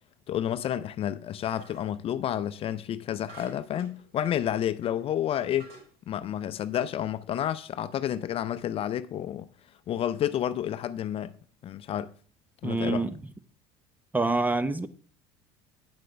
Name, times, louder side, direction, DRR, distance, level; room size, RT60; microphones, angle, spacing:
voice 1, 0.3-5.7 6.1-9.5 9.9-11.3 11.6-12.1 12.6-13.1, left 10 dB, 45° left, 0.6 m, -30 dB
sound 1, 1.4-2.0 3.3-4.4 5.0-5.1 5.6-5.9, right 3 dB, 60° right, 4.7 m, -50 dB
voice 2, 12.6-13.1 14.1-14.9, right 3 dB, 10° right, 0.8 m, -26 dB
9.6 x 7.8 x 3.3 m
supercardioid pair, 90°, 14 cm